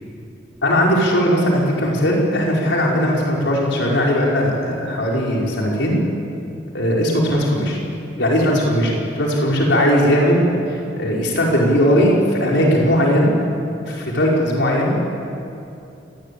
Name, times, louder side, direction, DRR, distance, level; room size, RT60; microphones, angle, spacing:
voice 1, 0.6-6.0 6.7-7.8 8.2-13.3 13.9-15.0, equal, 65° left, -3 dB, 5.1 m, -18 dB
27.0 x 20.0 x 8.5 m, 2.7 s
head